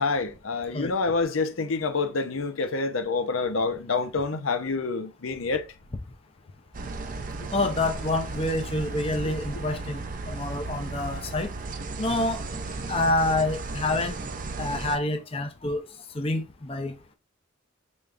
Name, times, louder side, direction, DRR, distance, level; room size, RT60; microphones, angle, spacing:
voice 1, 0.0-5.6, left 4 dB, 85° left, 0.7 m, -27 dB
sound 1, 6.7-15.0, right 3 dB, 40° right, 0.6 m, -35 dB
voice 2, 7.5-10.0 10.3-11.5 12.0-12.4 12.9-14.2 14.6-15.8 16.1-16.9, left 2 dB, 30° left, 0.6 m, -27 dB
5.2 x 3.4 x 2.4 m
head